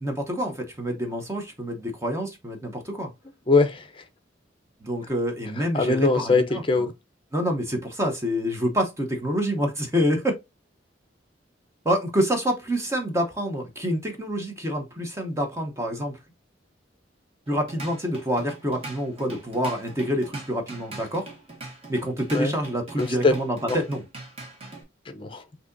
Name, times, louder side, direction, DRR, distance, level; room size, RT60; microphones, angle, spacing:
voice 1, 0.0-3.1 4.8-6.6 7.3-10.4 11.8-16.1 17.5-21.2 21.9-24.0, equal, 15° right, 0.8 m, -27 dB
voice 2, 3.5-4.0 5.6-6.9 22.3-22.5 23.0-23.3 23.7-23.8 25.1-25.4, left 3 dB, 25° left, 0.6 m, -22 dB
Drum kit / Drum, 17.5-24.8, right 2 dB, 30° right, 1.5 m, -41 dB
6.1 x 2.7 x 2.6 m
head